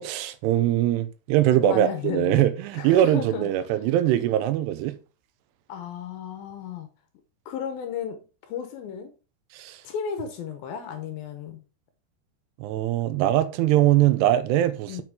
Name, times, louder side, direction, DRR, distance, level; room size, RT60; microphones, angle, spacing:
voice 1, 0.0-5.0 9.5-9.8 12.6-15.0, right 13 dB, 85° right, 2.7 m, -22 dB
voice 2, 1.6-2.4 2.7-3.5 5.7-6.9 7.5-8.2 8.5-9.1 9.8-11.6 14.9-15.0, left 8 dB, 70° left, 2.4 m, -33 dB
7.6 x 6.1 x 3.6 m
omnidirectional pair, 4.9 m